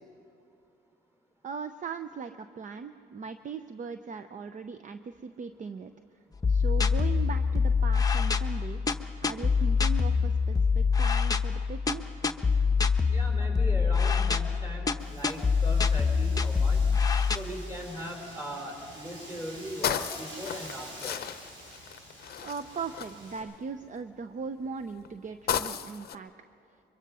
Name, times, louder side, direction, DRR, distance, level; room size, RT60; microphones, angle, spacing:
voice 1, 1.4-5.9 6.5-8.8 9.2-12.2 22.4-26.3, right 5 dB, 40° right, 10 dB, 0.6 m, -39 dB
sound 1, 6.4-17.4, left 5 dB, 20° left, 0.9 m, -25 dB
voice 2, 13.1-16.9 17.3-21.2, equal, 10° right, 2 dB, 4.4 m, -39 dB
Wind, 15.0-23.4, right 1 dB, 80° right, 6.5 m, -47 dB
sound 2, 18.0-18.1 18.5-18.6 18.8-24.0 24.6-26.2, left 9 dB, 50° left, 0.7 m, -35 dB
23.5 x 22.5 x 5.5 m, 2.6 s
cardioid pair, 90°, 20 cm